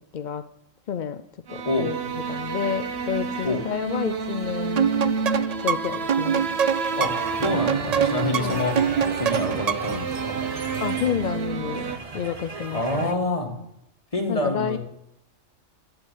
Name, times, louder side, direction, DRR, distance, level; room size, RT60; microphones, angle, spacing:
voice 1, 0.1-0.4 0.9-1.2 1.5-2.0 2.3-4.9 5.6-6.5 8.3-8.6 10.8-12.8 14.3-14.8, left 8 dB, 55° left, 10 dB, 0.5 m, -29 dB
sound 1, 1.5-12.0, right 5 dB, 50° right, 1.2 m, -30 dB
sound 2, 4.8-10.0, right 8 dB, 90° right, 0.3 m, -25 dB
sound 3, 7.0-13.1, right 4 dB, 30° right, 0.9 m, -34 dB
voice 2, 7.4-8.8 9.1-10.1 12.7-13.5 14.1-14.8, left 2 dB, 25° left, 2 dB, 2.2 m, -26 dB
11.5 x 8.1 x 8.6 m, 0.80 s
omnidirectional pair, 1.4 m